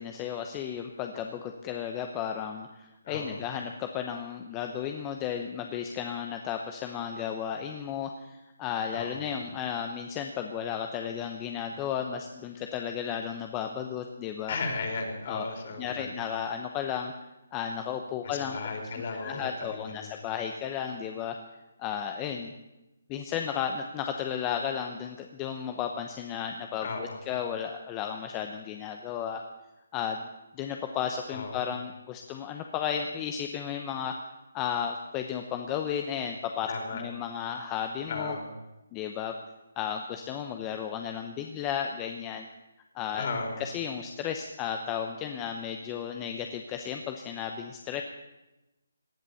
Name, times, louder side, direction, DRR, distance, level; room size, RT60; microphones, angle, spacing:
voice 1, 0.0-14.6 15.3-15.4 15.8-17.1 17.5-18.6 19.2-21.4 21.8-22.5 23.1-29.4 29.9-30.3 30.5-34.2 34.5-38.4 38.9-39.3 39.8-42.5 42.9-43.3 43.6-48.0, left 8 dB, 20° left, 4 dB, 0.9 m, -34 dB
voice 2, 3.0-3.4 8.9-9.3 14.5-16.1 18.2-20.1 26.8-27.2 31.3-31.6 36.7-37.0 38.1-38.5 43.1-43.6, left 3 dB, 45° left, 3 dB, 4.1 m, -35 dB
18.0 x 11.0 x 7.1 m, 1.0 s
hypercardioid pair, 160°, 0 cm